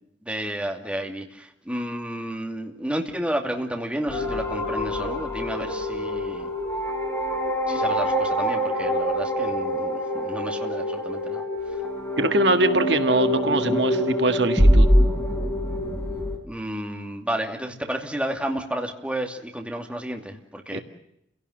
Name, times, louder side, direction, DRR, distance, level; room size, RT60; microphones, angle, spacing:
voice 1, 0.2-6.5 7.7-11.8 16.4-20.8, right 1 dB, 5° right, 2 dB, 2.6 m, -31 dB
sound 1, 4.1-16.4, equal, 15° left, 4.1 m, -24 dB
voice 2, 12.2-14.9 20.7-20.8, right 2 dB, 70° right, 7 dB, 1.7 m, -22 dB
30.0 x 17.5 x 7.9 m, 0.80 s
head